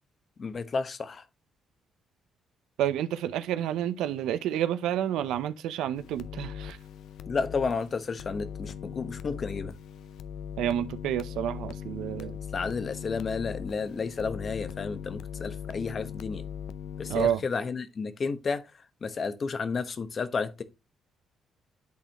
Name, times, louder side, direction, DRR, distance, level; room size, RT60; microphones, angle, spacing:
voice 1, 0.4-1.2 7.3-9.7 12.5-16.4 17.0-18.7 19.0-20.6, left 4 dB, 40° left, 1.0 m, -32 dB
voice 2, 2.8-6.8 10.6-12.4 17.1-17.4, right 11 dB, 90° right, 0.6 m, -29 dB
sound 1, 6.0-17.3, left 8 dB, 80° left, 0.5 m, -40 dB
10.5 x 4.1 x 2.9 m
cardioid pair, 90°, 0 cm